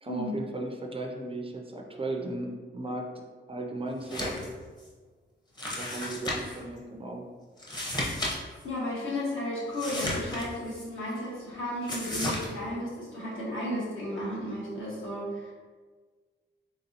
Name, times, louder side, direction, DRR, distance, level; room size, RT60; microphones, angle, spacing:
voice 1, 0.0-3.1 3.5-4.4 5.7-7.2, right 2 dB, 30° right, 2 dB, 0.4 m, -36 dB
sound 1, 4.0-4.5 4.8-4.9 5.6-6.6 7.6-8.4 8.6-8.7 9.7-10.8 11.9-12.5, left 1 dB, 20° left, 0.7 m, -33 dB
voice 2, 8.6-15.5, left 1 dB, 80° left, -6 dB, 1.5 m, -34 dB
4.0 x 3.7 x 2.8 m, 1.5 s
wide cardioid pair, 160°, 20 cm